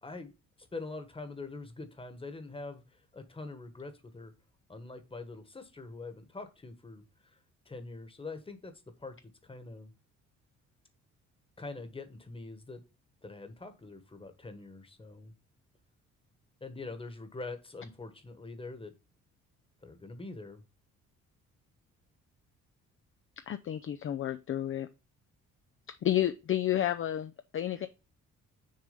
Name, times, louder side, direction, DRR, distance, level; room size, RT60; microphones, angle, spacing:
voice 1, 0.0-0.3 0.6-4.3 4.7-7.4 7.6-8.7 9.0-9.2 9.4-9.9 11.6-12.8 13.2-15.3 16.6-18.9 19.8-20.6, left 3 dB, 20° left, 1.3 m, -44 dB
voice 2, 23.5-24.9 25.9-27.9, left 12 dB, 45° left, 0.5 m, -31 dB
6.5 x 3.3 x 5.1 m
cardioid pair, 90°, 30 cm